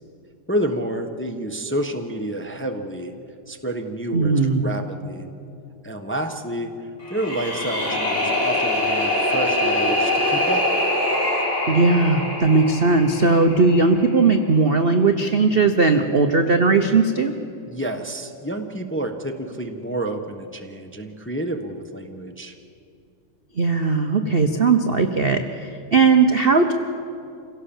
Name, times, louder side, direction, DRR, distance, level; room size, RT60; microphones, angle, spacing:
voice 1, 0.5-3.1 3.5-5.3 5.8-10.6 17.7-22.5, right 1 dB, 10° left, 4 dB, 0.8 m, -29 dB
voice 2, 4.1-4.6 11.7-17.3 23.6-26.7, right 4 dB, 55° right, 6 dB, 0.6 m, -18 dB
sound 1, 7.0-14.1, left 1 dB, 30° left, 3.8 m, -23 dB
27.0 x 17.0 x 7.3 m, 2.5 s
omnidirectional pair, 2.4 m